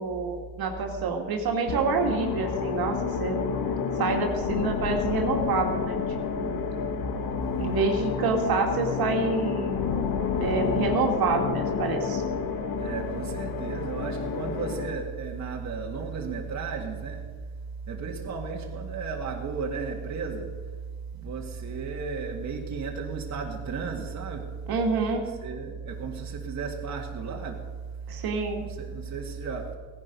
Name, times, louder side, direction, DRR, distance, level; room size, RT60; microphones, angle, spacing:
voice 1, 0.0-3.4 4.0-6.6 7.5-9.8 10.4-12.2 24.7-25.3 28.1-28.7, right 4 dB, 65° right, 2.3 m, -28 dB
sound 1, 1.7-15.0, left 6 dB, 65° left, 1.7 m, -29 dB
voice 2, 12.8-17.3 17.9-20.6 21.1-24.6 25.4-27.7 28.6-29.7, right 5 dB, 45° right, 2.0 m, -34 dB
17.5 x 11.0 x 5.4 m
cardioid pair, 140°, 39 cm